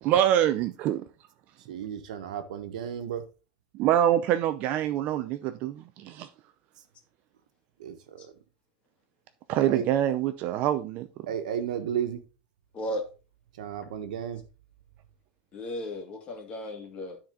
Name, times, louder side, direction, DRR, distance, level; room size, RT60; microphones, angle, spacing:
voice 1, 0.0-1.1 3.7-6.3 9.5-11.3, right 11 dB, 40° right, 0.6 m, -25 dB
voice 2, 1.7-3.2 7.8-8.3 9.7-9.9 11.3-12.2 13.6-14.4, right 9 dB, 90° right, 1.4 m, -33 dB
voice 3, 12.7-13.1 15.5-17.2, left 1 dB, 30° left, 2.2 m, -35 dB
12.5 x 4.3 x 3.8 m
supercardioid pair, 150°, 4 cm